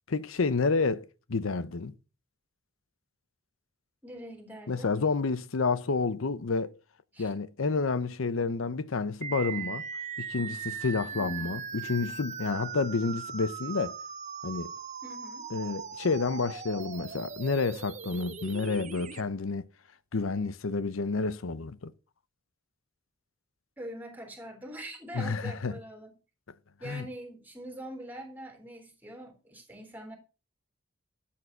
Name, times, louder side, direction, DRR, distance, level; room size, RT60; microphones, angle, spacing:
voice 1, 0.1-1.9 4.7-6.7 7.2-9.8 10.2-13.9 14.4-14.7 15.5-19.6 20.1-21.9 25.1-25.8 26.8-27.1, left 4 dB, 85° left, 0.7 m, -30 dB
voice 2, 4.0-4.9 7.1-7.3 11.1-11.6 15.0-15.4 23.8-26.1 26.8-30.2, right 1 dB, 10° right, 3.5 m, -43 dB
sound 1, 9.2-19.2, right 7 dB, 35° right, 0.8 m, -39 dB
12.5 x 7.5 x 5.9 m
head